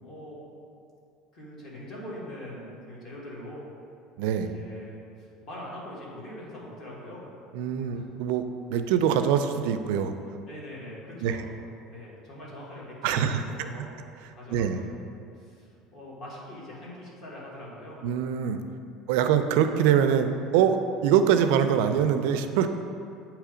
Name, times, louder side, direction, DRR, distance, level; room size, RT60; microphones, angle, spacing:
voice 1, 0.0-0.4 1.3-3.6 4.4-7.2 7.9-8.1 10.5-11.4 11.9-13.2 13.5-13.9 14.3-15.1 15.4-18.0, left 1 dB, 35° left, -5 dB, 1.6 m, -42 dB
voice 2, 4.2-4.5 7.5-10.1 11.2-11.4 13.0-13.7 14.5-14.8 18.0-18.6 19.1-22.7, right 8 dB, 75° right, 8 dB, 0.4 m, -24 dB
8.4 x 2.9 x 5.0 m, 2.4 s
cardioid pair, 175°, 0 cm